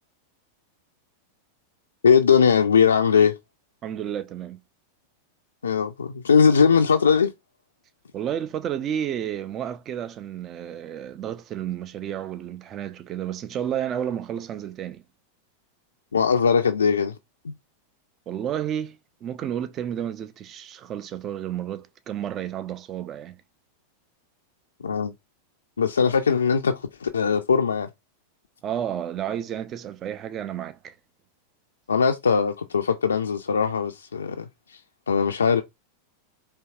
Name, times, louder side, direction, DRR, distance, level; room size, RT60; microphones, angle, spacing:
voice 1, 2.0-3.4 5.6-7.3 16.1-17.1 17.4-17.5 24.8-25.1 25.8-27.9 31.9-34.8 35.1-35.6, left 6 dB, 70° left, 0.3 m, -20 dB
voice 2, 3.8-4.6 8.1-15.0 18.3-23.4 28.6-31.0, right 10 dB, 30° right, 0.4 m, -31 dB
4.4 x 2.8 x 2.3 m
figure-of-eight pair, 90°, 0 cm